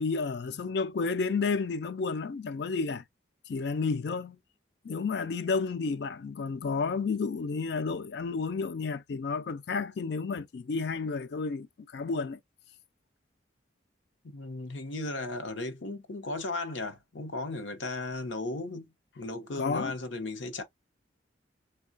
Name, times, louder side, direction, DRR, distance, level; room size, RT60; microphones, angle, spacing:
voice 1, 0.0-3.0 3.5-4.4 4.8-12.4 19.6-19.9, left 4 dB, 55° left, 0.4 m, -31 dB
voice 2, 14.3-18.9 19.2-20.6, left 2 dB, 75° left, 0.8 m, -36 dB
4.4 x 2.3 x 2.4 m
head